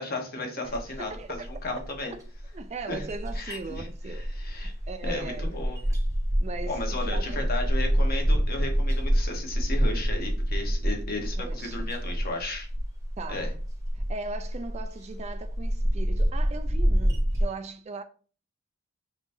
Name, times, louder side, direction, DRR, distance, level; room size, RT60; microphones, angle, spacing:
voice 1, 0.0-2.1 2.9-3.0 3.3-3.9 4.3-4.7 5.0-5.8 6.7-12.7 13.3-13.5, left 2 dB, 50° left, 1.1 m, -34 dB
voice 2, 0.6-1.5 2.1-2.2 2.5-5.5 6.4-7.5 11.4-11.9 13.2-13.5 13.9-18.0, right 3 dB, 35° right, 0.3 m, -39 dB
sound 1, 0.7-17.4, equal, 15° right, 0.8 m, -27 dB
5.4 x 3.0 x 2.6 m
head